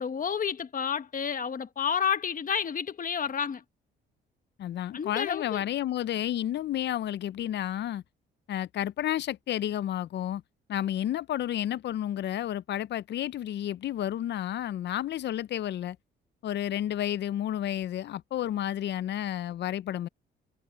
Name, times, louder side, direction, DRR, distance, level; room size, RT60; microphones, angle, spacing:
voice 1, 0.0-3.6 4.9-5.6, left 7 dB, 45° left, 1.4 m, -30 dB
voice 2, 4.6-8.0 8.5-10.4 10.7-16.0 16.4-20.1, left 11 dB, 60° left, 0.6 m, -31 dB
cardioid pair, 90°, 20 cm